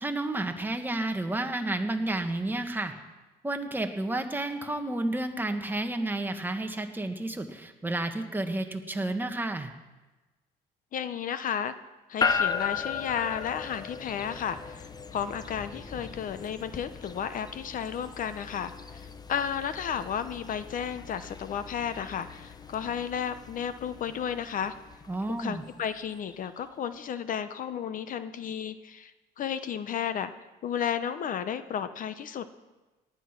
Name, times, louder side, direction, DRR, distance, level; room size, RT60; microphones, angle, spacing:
voice 1, 0.0-2.9 3.4-9.7 25.1-25.6, right 2 dB, 10° right, 5 dB, 1.5 m, -31 dB
voice 2, 10.9-11.7 12.1-24.7 25.4-29.1 29.4-30.3 30.6-32.5, left 8 dB, 55° left, 12 dB, 0.8 m, -33 dB
sound 1, 12.2-26.5, left 6 dB, 25° left, 0.9 m, -37 dB
18.5 x 10.5 x 6.0 m, 1.2 s
cardioid pair, 110°, 17 cm